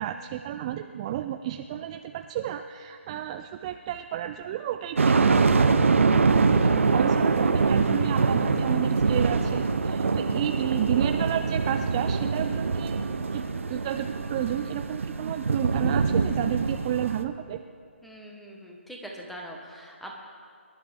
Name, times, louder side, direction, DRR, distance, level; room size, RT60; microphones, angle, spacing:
voice 1, 0.0-5.8 6.1-17.6, right 11 dB, 25° right, 8 dB, 0.4 m, -32 dB
sound 1, 5.0-17.2, right 4 dB, 70° right, 0.9 m, -24 dB
voice 2, 18.0-20.1, right 1 dB, ahead, -1 dB, 1.5 m, -42 dB
24.0 x 11.0 x 3.6 m, 2.3 s
figure-of-eight pair, 150°, 7 cm